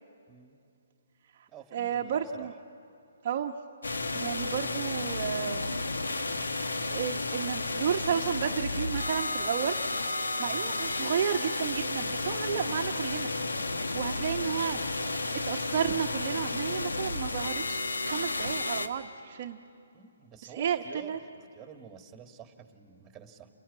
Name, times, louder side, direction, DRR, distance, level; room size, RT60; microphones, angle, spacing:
voice 1, 0.3-0.6 1.5-2.5 10.5-10.7 19.9-21.2 21.5-23.5, right 8 dB, 15° right, 5 dB, 2.0 m, -49 dB
voice 2, 1.4-2.5 3.2-3.5 4.1-5.8 6.9-9.8 10.4-13.3 13.9-19.6 20.4-21.2, right 8 dB, 45° right, 2 dB, 0.9 m, -32 dB
sound 1, 3.8-18.9, left 2 dB, 85° left, 1.4 m, -32 dB
29.5 x 21.5 x 8.4 m, 2.5 s
hypercardioid pair, 145°, 0 cm